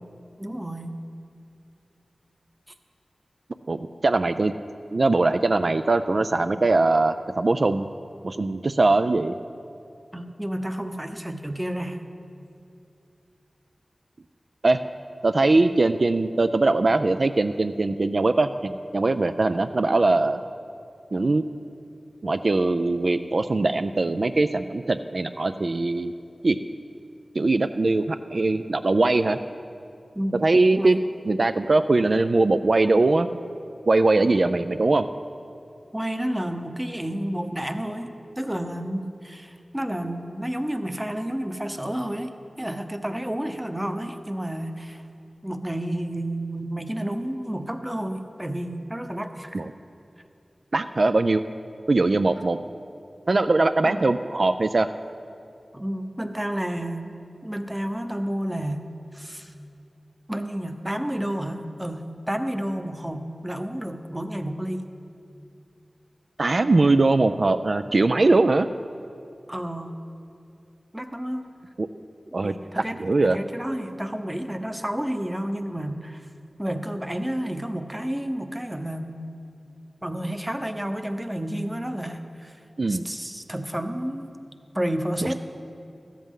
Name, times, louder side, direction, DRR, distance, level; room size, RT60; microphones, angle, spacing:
voice 1, 0.4-0.9 10.1-12.0 30.1-30.4 30.7-30.9 35.9-42.3 42.6-45.0 45.4-49.6 53.8-54.0 55.7-57.1 57.4-58.9 59.1-59.5 60.3-64.9 69.5-69.9 70.9-71.5 72.3-76.3 76.6-79.2 80.0-82.6 82.9-84.3 84.7-85.3, right 1 dB, 10° right, 8 dB, 0.8 m, -30 dB
voice 2, 3.7-4.5 4.9-7.9 8.2-9.4 14.6-14.8 15.2-20.4 21.1-21.4 22.2-26.1 26.4-26.6 27.3-29.4 30.4-31.0 31.3-33.3 33.9-35.1 49.5-49.7 50.7-51.4 51.9-52.6 53.3-54.9 66.4-68.7 71.8-71.9 72.3-72.5 73.0-73.4 82.8-83.0, right 2 dB, 60° right, 10 dB, 0.3 m, -21 dB
14.0 x 13.5 x 3.7 m, 2.5 s
wide cardioid pair, 70°, 0 cm